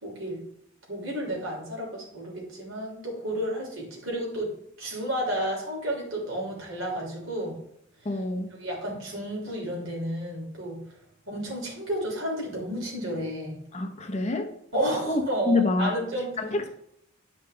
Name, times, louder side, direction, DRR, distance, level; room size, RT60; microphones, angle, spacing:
voice 1, 0.0-0.4 0.9-4.5 4.8-7.6 8.6-10.8 11.3-13.6 14.7-16.3, right 1 dB, 80° right, -2 dB, 3.1 m, -31 dB
voice 2, 8.0-8.5 13.7-14.5 15.1-15.2 15.5-15.9 16.4-16.7, left 3 dB, 35° left, 5 dB, 0.9 m, -26 dB
10.5 x 5.4 x 3.4 m, 0.72 s
head